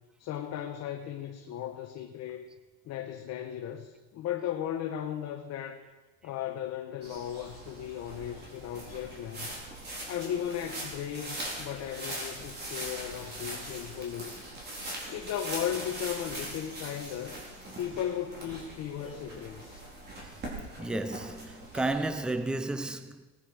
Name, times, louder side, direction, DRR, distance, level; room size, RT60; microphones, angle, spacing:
voice 1, 0.2-2.5 2.8-5.8 6.2-9.5 10.1-14.3 15.1-17.4 17.8-19.8, left 10 dB, 45° left, 1.1 m, -36 dB
sound 1, 7.0-22.3, right 1 dB, 30° right, 4.1 m, -41 dB
voice 2, 20.8-23.2, right 2 dB, ahead, 0.6 m, -33 dB
19.5 x 10.0 x 4.9 m
cardioid pair, 140°, 35 cm